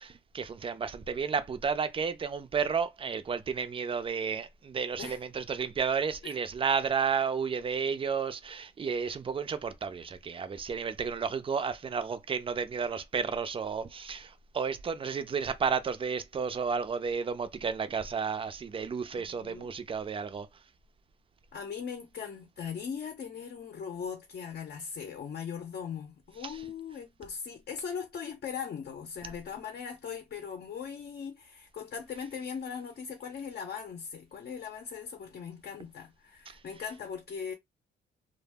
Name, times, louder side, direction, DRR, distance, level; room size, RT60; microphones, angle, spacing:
voice 1, 0.0-20.5 26.4-26.6 36.5-36.6, right 6 dB, 25° right, 0.4 m, -32 dB
voice 2, 19.2-19.7 21.5-37.5, left 7 dB, 50° left, 0.6 m, -39 dB
2.1 x 2.0 x 3.4 m
cardioid pair, 90°, 20 cm